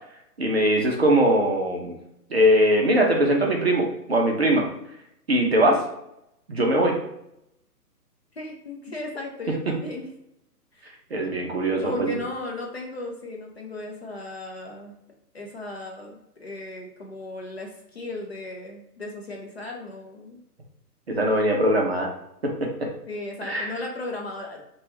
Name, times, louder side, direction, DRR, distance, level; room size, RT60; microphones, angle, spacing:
voice 1, 0.4-2.0 2.3-4.7 5.3-5.8 6.5-7.0 11.1-12.2 21.1-22.1 22.4-22.9 23.4-23.8, right 1 dB, 45° right, 0 dB, 0.5 m, -21 dB
voice 2, 8.3-10.1 10.7-10.9 11.8-14.9 15.3-20.4 23.1-24.6, left 2 dB, 45° left, 0 dB, 0.5 m, -36 dB
2.8 x 2.2 x 3.0 m, 0.81 s
hypercardioid pair, 160°, 48 cm